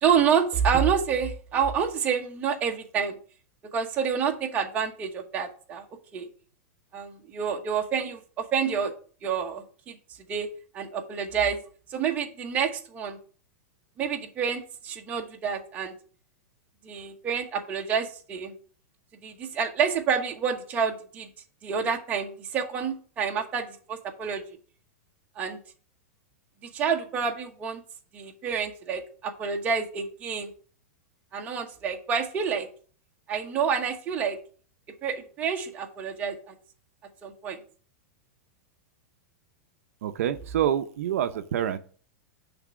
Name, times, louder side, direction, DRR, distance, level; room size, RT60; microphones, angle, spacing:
voice 1, 0.0-3.2 3.7-5.8 6.1-6.3 6.9-8.9 9.2-10.0 10.3-10.5 10.7-11.6 11.9-13.2 14.0-15.9 16.8-18.5 19.2-21.3 21.6-24.4 25.4-25.6 26.7-27.8 28.1-30.5 31.3-32.7 33.3-34.4 35.0-36.5 37.2-37.6, right 7 dB, 20° right, 2 dB, 1.0 m, -28 dB
voice 2, 40.0-41.8, right 10 dB, 65° right, 9 dB, 0.6 m, -27 dB
9.7 x 3.4 x 6.2 m, 0.43 s
supercardioid pair, 170°, 8 cm